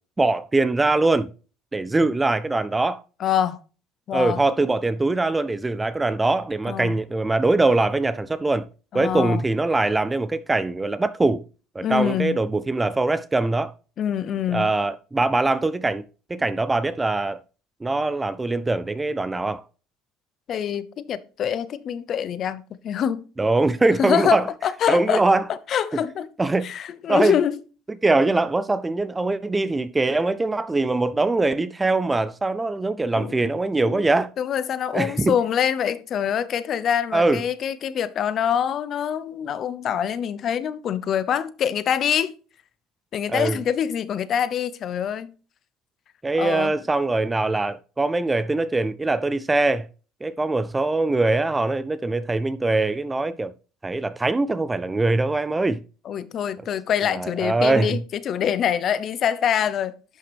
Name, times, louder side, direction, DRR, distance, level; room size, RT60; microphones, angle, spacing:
voice 1, 0.2-1.3 1.7-3.0 4.1-8.7 8.9-11.4 11.8-13.7 14.5-16.0 16.3-17.4 17.8-19.6 23.4-24.5 24.9-25.4 26.4-26.7 27.1-27.4 28.0-34.3 34.9-35.3 37.1-37.4 43.3-43.6 46.2-49.9 50.2-53.5 53.8-55.8 57.1-58.0, right 2 dB, 10° right, 0.3 m, -22 dB
voice 2, 3.2-3.6 4.1-4.4 6.6-6.9 8.9-9.4 11.8-12.4 14.0-14.7 20.5-23.2 24.0-25.2 25.5-26.3 26.6-27.6 33.2-33.6 33.8-34.0 34.4-42.3 43.1-45.3 46.4-46.7 56.0-59.9, left 9 dB, 40° left, 0.7 m, -25 dB
11.0 x 5.7 x 3.4 m
cardioid pair, 135°, 0 cm